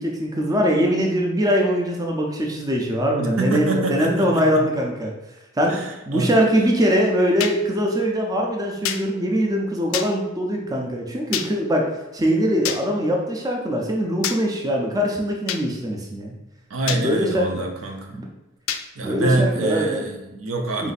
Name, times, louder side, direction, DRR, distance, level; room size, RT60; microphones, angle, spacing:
voice 1, 0.0-5.1 5.6-5.8 6.1-16.3 16.9-17.7 18.1-18.3 19.0-20.0 20.8-20.9, equal, 20° right, 0 dB, 0.4 m, -22 dB
voice 2, 3.2-4.6 5.7-6.3 16.7-18.2 19.0-20.9, right 2 dB, 75° right, 3 dB, 0.6 m, -25 dB
sound 1, 7.4-7.6 8.8-9.0 9.9-10.1 11.3-11.5 12.6-12.8 14.2-14.4 15.5-15.6 16.9-17.0 18.7-18.8, left 9 dB, 75° left, 0.3 m, -26 dB
4.0 x 2.6 x 4.0 m, 0.99 s
head